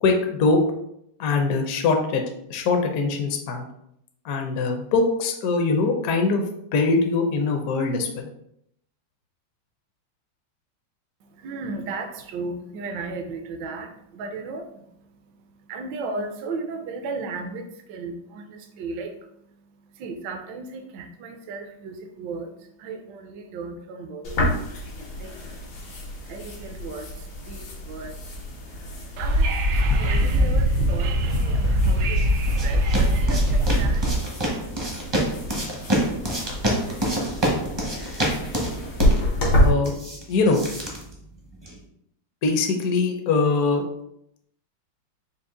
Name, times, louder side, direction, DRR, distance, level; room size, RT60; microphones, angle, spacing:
voice 1, 0.0-0.6 1.2-2.2 2.5-3.7 4.2-6.4 6.7-8.3 39.6-39.9 40.3-40.6 42.4-43.8, left 4 dB, 65° left, 3 dB, 0.9 m, -22 dB
voice 2, 11.2-36.7, right 3 dB, 75° right, 5 dB, 1.2 m, -37 dB
sound 1, 24.2-39.7, equal, 90° left, 2.0 m, -29 dB
Wind / Subway metro underground, 29.2-34.2, equal, 90° right, 1.4 m, -21 dB
sound 2, 31.8-41.8, right 1 dB, 30° right, 0.5 m, -28 dB
5.4 x 2.5 x 3.7 m, 0.75 s
omnidirectional pair, 2.1 m